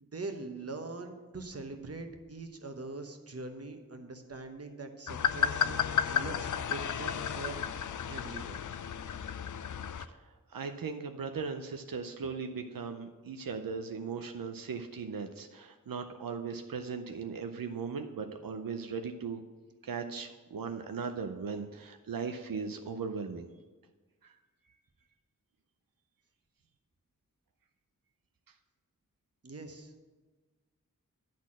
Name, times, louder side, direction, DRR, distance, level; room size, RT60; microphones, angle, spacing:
voice 1, 0.0-7.6 8.1-8.6 29.4-29.9, right 3 dB, 45° right, 5 dB, 1.0 m, -43 dB
sound 1, 5.1-10.1, left 8 dB, 65° left, 0.4 m, -32 dB
voice 2, 10.1-19.4 19.8-23.5 24.2-24.3, right 5 dB, 90° right, 6 dB, 0.6 m, -38 dB
10.0 x 4.1 x 7.5 m, 1.3 s
wide cardioid pair, 70°, 33 cm